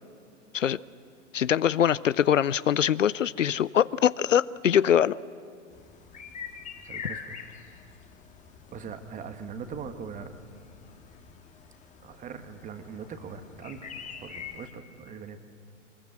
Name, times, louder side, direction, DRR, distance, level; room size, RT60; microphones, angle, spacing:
voice 1, 1.3-5.2, left 9 dB, 75° left, 20 dB, 0.6 m, -23 dB
sound 1, 5.7-14.7, left 7 dB, 20° left, 1.6 m, -45 dB
voice 2, 6.8-7.4 8.7-10.3 12.0-13.9 14.2-15.4, right 6 dB, 20° right, 8 dB, 1.5 m, -41 dB
24.0 x 21.0 x 7.6 m, 2.3 s
figure-of-eight pair, 105°, 39 cm